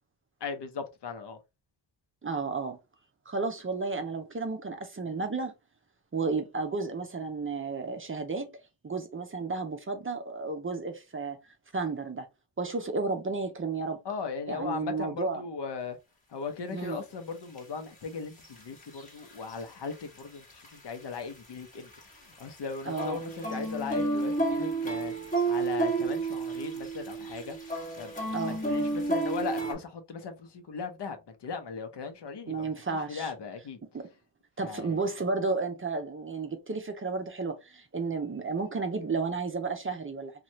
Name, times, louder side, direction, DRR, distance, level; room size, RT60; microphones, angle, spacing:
voice 1, 0.4-1.4 14.0-16.0 16.3-25.1 25.5-27.6 28.0-28.1 28.4-33.8 34.6-35.0, left 5 dB, 60° left, 0.8 m, -38 dB
voice 2, 2.2-2.8 3.3-5.5 6.1-8.5 8.8-11.4 11.7-12.3 12.6-14.0 14.5-15.4 16.7-17.0 22.9-23.2 28.3-28.6 32.5-33.3 33.9-34.1 34.6-40.3, right 4 dB, 30° right, 0.6 m, -32 dB
Oriental Garden Intro, 16.8-16.9 17.6-17.7 18.4-19.6 19.9-20.2 20.5-22.1 22.4-29.7, right 3 dB, 15° left, 1.4 m, -31 dB
2.7 x 2.4 x 3.0 m
cardioid pair, 85°, 46 cm